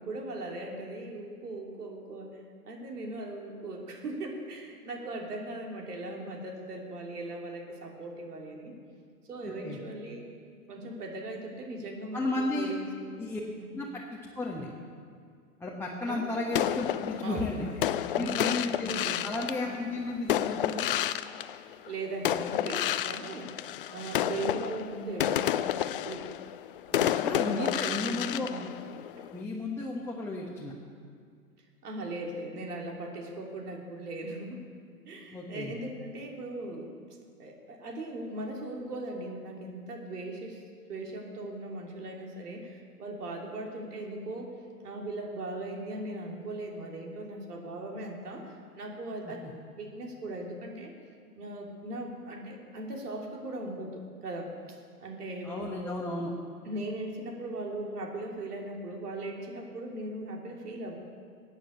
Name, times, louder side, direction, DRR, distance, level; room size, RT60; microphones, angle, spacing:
voice 1, 0.0-8.8 9.3-10.3 10.7-13.2 13.6-13.7 16.1-16.3 17.2-17.5 18.0-18.4 18.9-19.3 21.9-23.5 23.9-26.3 26.9-28.7 31.8-34.6 35.0-40.6 40.9-44.5 44.8-49.4 49.8-50.9 51.4-54.5 55.0-55.9 56.6-60.9, right 2 dB, 75° right, 1 dB, 3.2 m, -39 dB
voice 2, 9.4-9.8 12.1-12.7 13.2-13.4 13.7-14.0 14.3-14.7 15.6-17.7 18.1-18.9 19.2-20.9 27.1-28.5 29.3-30.7 35.3-35.7 49.3-49.5 55.4-56.3, left 2 dB, 5° left, -4 dB, 1.2 m, -33 dB
sound 1, 16.5-21.9 22.2-29.4, left 11 dB, 40° left, 0.4 m, -31 dB
15.0 x 9.0 x 8.2 m, 2.1 s
hypercardioid pair, 125°, 47 cm